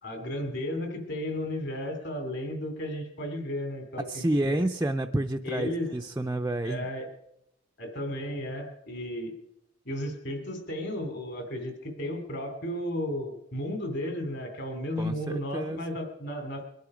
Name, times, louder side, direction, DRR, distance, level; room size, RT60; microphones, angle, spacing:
voice 1, 0.0-4.7 5.4-5.9 6.6-7.1 7.8-9.3 9.8-16.6, left 1 dB, 55° left, 5 dB, 3.1 m, -34 dB
voice 2, 4.1-6.8 15.0-15.8, right 1 dB, 15° right, 4 dB, 0.5 m, -29 dB
22.5 x 11.5 x 5.0 m, 0.80 s
head